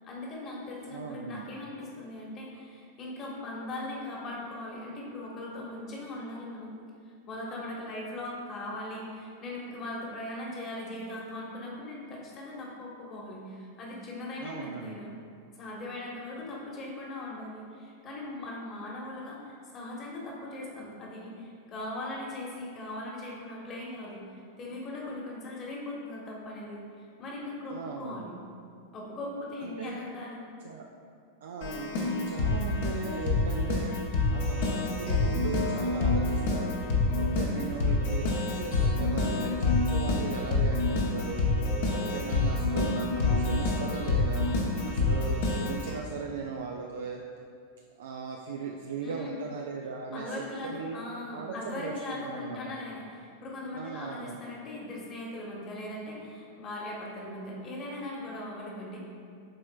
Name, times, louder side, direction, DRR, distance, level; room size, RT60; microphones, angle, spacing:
voice 1, 0.0-6.7 7.3-15.1 15.5-24.2 24.6-28.3 28.9-30.4 49.0-49.4 50.1-59.0, left 1 dB, 30° left, -3 dB, 1.4 m, -39 dB
voice 2, 0.9-1.5 14.4-15.0 27.7-28.3 29.6-30.0 30.6-30.9 31.4-31.9 32.3-33.9 34.3-36.7 37.1-41.5 41.9-44.5 44.8-47.2 48.0-51.0 51.3-52.7 53.7-54.4, right 5 dB, 60° right, 1 dB, 0.4 m, -38 dB
Keyboard (musical), 31.6-45.9, left 2 dB, 55° left, 1.0 m, -27 dB
11.0 x 4.2 x 2.4 m, 2.4 s
figure-of-eight pair, 90°, 0 cm